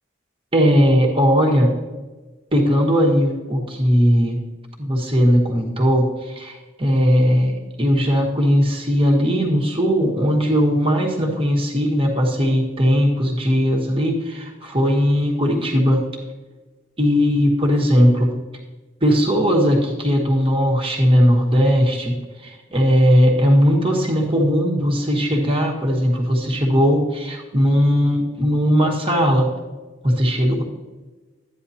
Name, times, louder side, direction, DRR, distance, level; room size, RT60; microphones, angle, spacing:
voice 1, 0.5-1.7 2.5-4.4 4.8-16.0 17.0-18.3 19.0-22.1 22.4-29.5 30.0-30.6, equal, 30° right, -1 dB, 1.6 m, -18 dB
12.5 x 9.6 x 2.9 m, 1.2 s
head